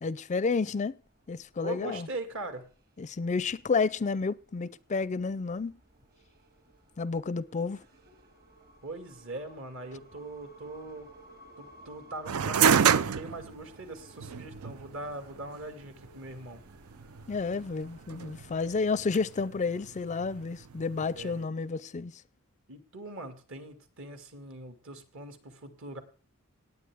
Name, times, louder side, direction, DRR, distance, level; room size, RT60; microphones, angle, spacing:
voice 1, 0.0-1.0 1.3-2.1 3.0-5.8 7.0-7.8 17.3-22.1, left 4 dB, 35° left, 0.4 m, -30 dB
sound 1, 1.0-18.8, right 1 dB, 45° right, 2.2 m, -57 dB
voice 2, 1.6-2.7 8.8-11.1 11.6-16.6 21.1-21.5 22.7-26.0, right 2 dB, 60° right, 2.3 m, -41 dB
sound 2, 12.3-21.4, right 7 dB, 85° right, 0.5 m, -30 dB
18.5 x 8.8 x 3.5 m
head